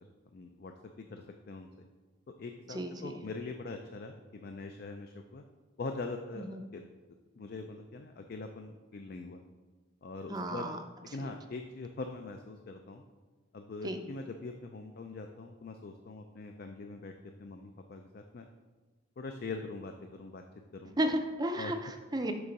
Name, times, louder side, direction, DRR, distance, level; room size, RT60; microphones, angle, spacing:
voice 1, 0.3-1.9 2.4-5.4 5.8-6.8 7.4-9.4 10.0-10.7 11.1-13.0 13.5-17.1 17.4-18.5 19.2-20.4 20.7-20.9 21.6-21.7, left 3 dB, 50° left, 5 dB, 0.4 m, -42 dB
voice 2, 2.7-3.2 6.4-6.6 10.3-10.8 11.2-11.3 13.8-14.0 21.0-22.3, right 1 dB, 20° right, 5 dB, 0.4 m, -34 dB
6.8 x 3.6 x 5.2 m, 1.3 s
head